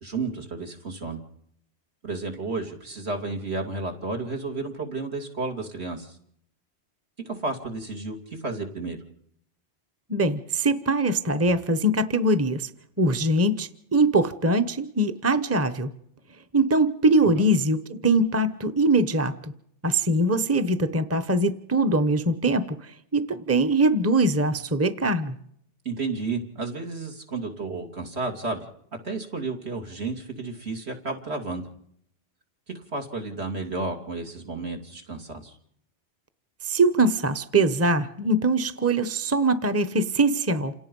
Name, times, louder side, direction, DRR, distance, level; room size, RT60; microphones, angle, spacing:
voice 1, 0.0-1.2 2.0-6.2 7.2-9.0 17.2-17.5 25.8-28.6 29.0-31.6 32.7-35.6, right 3 dB, 70° right, 3 dB, 3.0 m, -32 dB
voice 2, 10.1-12.7 13.0-15.9 16.5-19.5 19.8-25.4 36.6-40.7, right 2 dB, 15° right, 8 dB, 0.9 m, -22 dB
28.0 x 18.0 x 5.4 m, 0.70 s
omnidirectional pair, 1.1 m